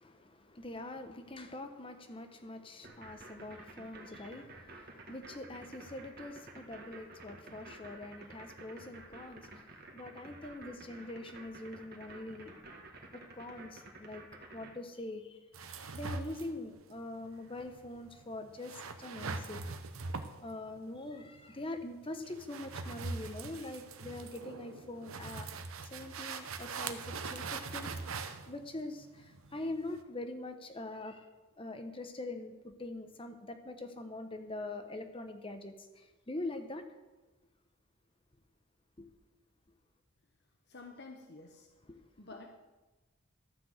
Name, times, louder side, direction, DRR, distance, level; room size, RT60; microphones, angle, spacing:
voice 1, 0.0-12.5 13.3-14.2 14.5-19.6 20.4-25.5 25.8-27.9 28.5-31.3 31.6-36.8 39.0-39.1 41.9-42.0, left 2 dB, 25° left, 7 dB, 0.9 m, -44 dB
sound 1, 2.8-14.7, right 2 dB, 45° right, 1.5 m, -51 dB
sound 2, 15.5-30.0, right 4 dB, 80° right, 0.8 m, -42 dB
voice 2, 40.7-41.7 42.2-42.6, left 3 dB, 50° left, 3 dB, 0.9 m, -50 dB
12.5 x 6.1 x 7.8 m, 1.2 s
head